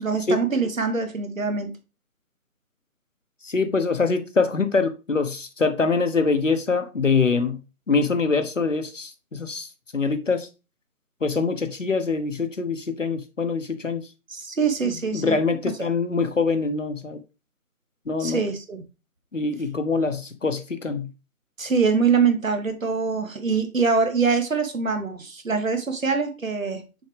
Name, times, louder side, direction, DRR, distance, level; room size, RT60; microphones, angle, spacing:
voice 1, 0.0-1.7 14.3-15.4 18.2-18.8 21.6-26.8, right 5 dB, 60° right, 1.5 m, -24 dB
voice 2, 3.4-7.6 7.9-10.5 11.2-14.0 15.1-17.2 18.1-18.4 19.3-21.1, left 4 dB, 55° left, 1.1 m, -24 dB
6.4 x 4.5 x 3.4 m
figure-of-eight pair, 170°, 44 cm